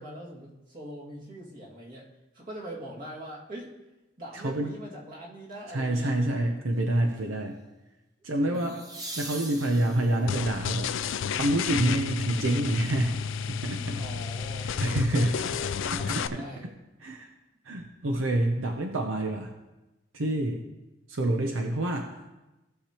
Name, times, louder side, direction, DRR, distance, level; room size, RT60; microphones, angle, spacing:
voice 1, 0.0-2.1 2.3-3.7 4.2-6.3 8.4-8.8 14.0-16.7, right 1 dB, 45° right, -5 dB, 2.1 m, -42 dB
voice 2, 4.3-4.7 5.7-7.5 8.2-8.8 9.2-10.9 11.4-13.2 13.5-14.0 14.6-15.4 15.9-16.4 17.0-17.3 17.7-19.5 20.1-20.6 21.1-22.2, right 1 dB, 80° right, 4 dB, 0.7 m, -27 dB
sound 1, 5.5-5.9 8.5-10.4 13.3-13.4, right 2 dB, 20° right, 0.8 m, -41 dB
sound 2, 10.3-16.3, left 7 dB, 75° left, 0.4 m, -31 dB
16.0 x 6.6 x 3.0 m, 1.0 s
head